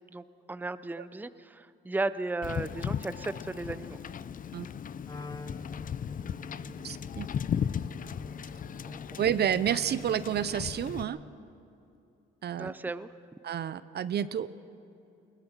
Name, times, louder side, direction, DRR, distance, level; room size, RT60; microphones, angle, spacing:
voice 1, 0.1-4.0 8.9-9.0 12.6-13.1, right 2 dB, 10° right, 14 dB, 0.6 m, -35 dB
Wind / Boat Water vehicle, 2.4-11.0, left 8 dB, 45° left, 0.6 m, -36 dB
Wind instrument woodwind instrument, 5.0-11.4, left 3 dB, 20° left, 0.9 m, -47 dB
voice 2, 6.8-7.3 9.2-11.2 12.4-12.7 13.4-14.5, right 9 dB, 55° right, 15 dB, 0.7 m, -29 dB
21.0 x 19.0 x 7.3 m, 2.6 s
cardioid pair, 90°, 20 cm